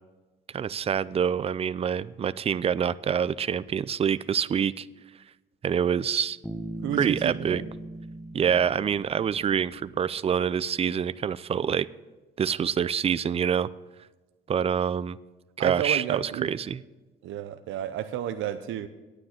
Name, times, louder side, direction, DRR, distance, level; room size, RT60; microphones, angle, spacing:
voice 1, 0.5-4.9 5.6-6.4 7.0-7.6 8.3-11.9 12.4-13.7 14.5-15.2 15.6-16.8, right 8 dB, 30° right, 17 dB, 0.4 m, -26 dB
Bass guitar, 6.4-10.1, right 1 dB, 5° left, 1.0 m, -39 dB
voice 2, 6.8-7.7 15.6-16.5 17.2-18.9, right 11 dB, 80° right, 9 dB, 0.6 m, -31 dB
9.9 x 8.9 x 5.8 m, 1.2 s
cardioid pair, 90°, 20 cm